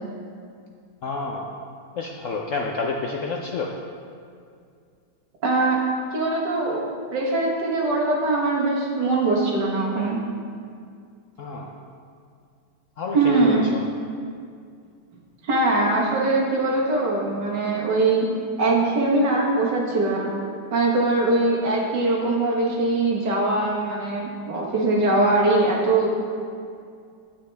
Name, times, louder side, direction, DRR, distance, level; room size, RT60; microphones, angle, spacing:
voice 1, 1.0-1.5 1.9-3.7 11.4-11.7 13.0-13.8, left 4 dB, 65° left, 0 dB, 0.8 m, -29 dB
voice 2, 5.4-5.8 6.1-6.8 7.1-10.2 13.1-13.7 15.4-18.3 18.6-20.3 20.7-26.1, right 2 dB, 70° right, -3 dB, 2.0 m, -22 dB
9.6 x 8.4 x 3.4 m, 2.3 s
omnidirectional pair, 1.9 m